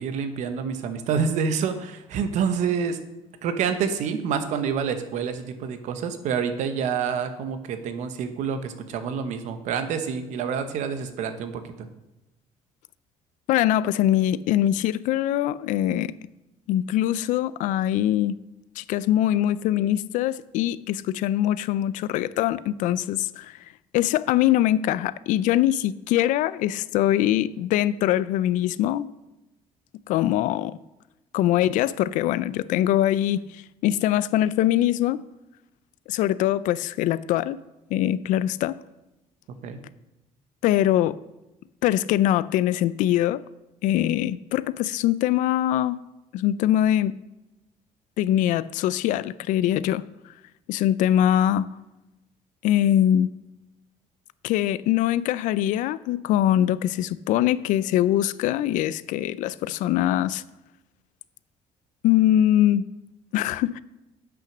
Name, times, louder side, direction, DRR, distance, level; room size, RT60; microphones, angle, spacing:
voice 1, 0.0-3.0 3.4-11.9 39.6-39.8, right 6 dB, 65° right, 1.0 m, -27 dB
voice 2, 13.5-16.1 16.7-18.4 18.8-23.6 23.9-29.1 30.1-30.8 31.3-35.2 36.1-37.6 37.9-38.8 40.6-41.2 41.8-43.4 43.8-46.0 46.3-47.2 48.2-50.0 50.7-51.7 52.6-53.3 54.4-60.4 62.0-62.9 63.3-63.8, left 12 dB, 75° left, 0.4 m, -23 dB
8.7 x 6.0 x 6.0 m
cardioid pair, 175°, 13 cm